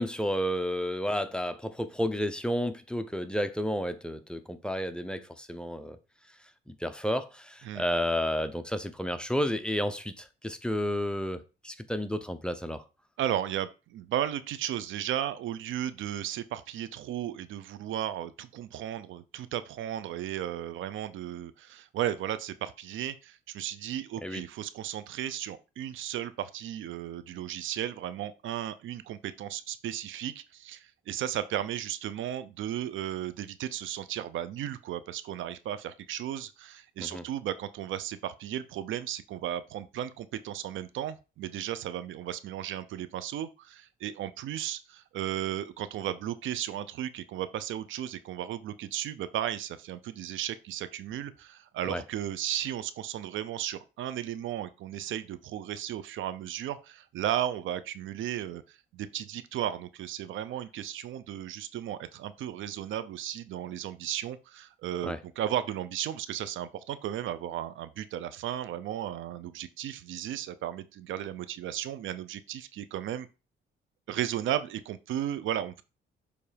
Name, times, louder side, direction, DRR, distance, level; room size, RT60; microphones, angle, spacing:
voice 1, 0.0-6.0 6.7-12.8 24.2-24.4 37.0-37.2 51.9-52.0 65.0-65.2, equal, 5° left, 0.8 m, -31 dB
voice 2, 13.2-73.3 74.1-75.8, right 11 dB, 80° right, 0.6 m, -35 dB
7.0 x 3.3 x 5.1 m
cardioid pair, 90°, 20 cm